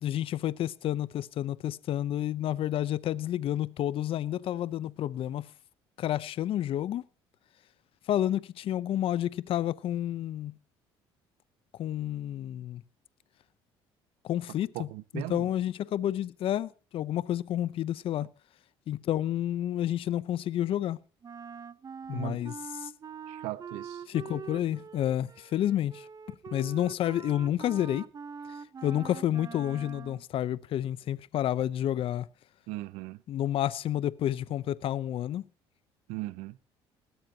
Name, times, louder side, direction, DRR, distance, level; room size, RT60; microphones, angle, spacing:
voice 1, 0.0-5.5 6.0-7.0 8.1-10.5 11.8-12.8 14.2-14.9 15.1-18.3 18.9-21.0 22.1-22.9 24.1-26.1 26.5-28.1 28.8-32.3 33.3-35.4, left 12 dB, 60° left, 0.7 m, -30 dB
voice 2, 14.7-15.5 22.1-22.4 23.3-24.0 32.7-33.2 36.1-36.6, right 17 dB, 85° right, 0.8 m, -38 dB
Wind instrument woodwind instrument, 21.2-30.2, right 6 dB, 35° right, 0.9 m, -44 dB
20.0 x 12.5 x 2.9 m
supercardioid pair, 90°, 11 cm